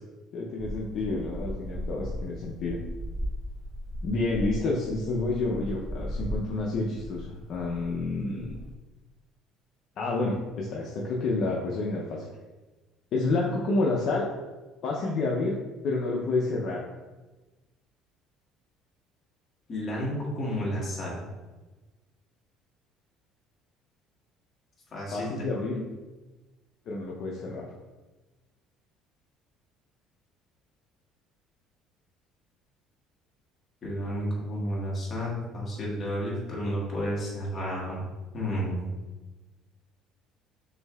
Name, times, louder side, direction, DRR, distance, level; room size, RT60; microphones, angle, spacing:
voice 1, 0.3-2.8 4.0-8.6 10.0-12.3 13.1-14.3 14.8-15.6 15.8-16.8 25.1-25.8 26.9-27.7, left 3 dB, 55° left, -3 dB, 0.5 m, -29 dB
sound 1, 0.6-8.8, equal, 30° right, 0.3 m, -37 dB
voice 2, 19.7-21.2 24.9-25.6 33.8-38.0 38.3-38.9, equal, 30° left, -5 dB, 1.4 m, -31 dB
6.3 x 2.7 x 2.3 m, 1.2 s
cardioid pair, 135°, 0 cm